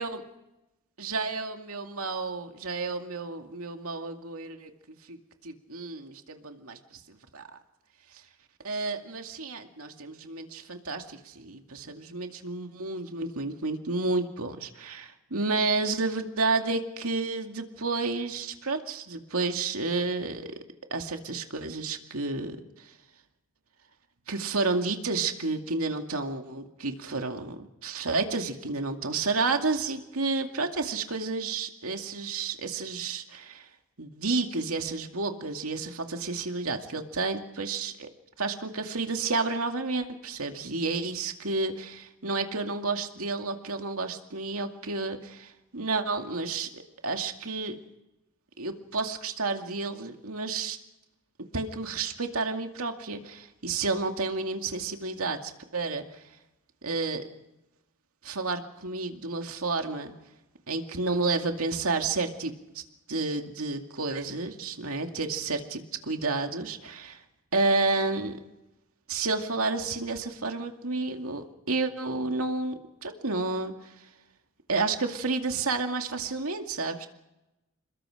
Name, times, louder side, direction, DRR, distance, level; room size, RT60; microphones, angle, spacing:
voice 1, 1.0-4.7 5.1-5.2 5.4-7.0 7.3-7.4 8.6-20.5 20.9-22.9 24.3-33.7 34.0-38.1 38.4-47.8 48.6-50.8 51.5-56.0 56.8-57.3 58.2-60.1 60.7-62.8 63.1-67.2 67.5-68.4 69.1-73.9 74.7-77.1, right 3 dB, 80° right, 4 dB, 2.4 m, -31 dB
28.0 x 22.0 x 5.0 m, 0.94 s
head